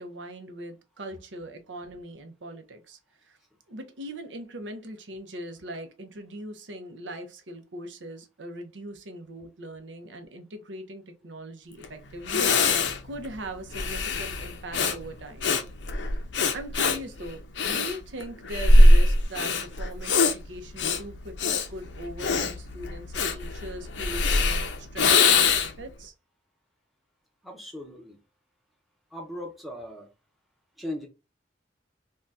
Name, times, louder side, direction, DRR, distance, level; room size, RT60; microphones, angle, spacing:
voice 1, 0.0-3.4 3.7-15.5 16.5-26.1, right 1 dB, 80° right, 0.7 m, -40 dB
Breathing, 11.8-11.9 12.2-25.9, left 2 dB, 75° left, 0.5 m, -22 dB
voice 2, 27.4-28.2 29.1-30.1 30.8-31.1, left 1 dB, ahead, 0.6 m, -38 dB
2.6 x 2.2 x 3.4 m
head